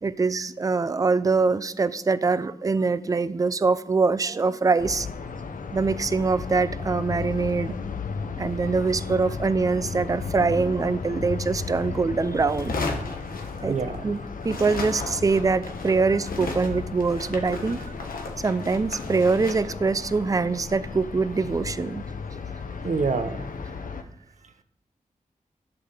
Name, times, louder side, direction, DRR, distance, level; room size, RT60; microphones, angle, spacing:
voice 1, 0.0-5.1 5.7-7.8 8.4-12.7 13.6-13.8 14.0-14.2 14.4-17.8 18.4-22.1, right 4 dB, 25° right, 15 dB, 0.4 m, -24 dB
sound 1, 4.8-24.0, left 5 dB, 70° left, 0.8 m, -35 dB
sound 2, 12.5-14.1 14.4-21.6, left 3 dB, 90° left, 1.3 m, -36 dB
voice 2, 13.1-14.0 22.8-23.5, right 4 dB, 60° right, 9 dB, 0.8 m, -28 dB
11.0 x 3.9 x 6.6 m, 0.79 s
wide cardioid pair, 85°, 14 cm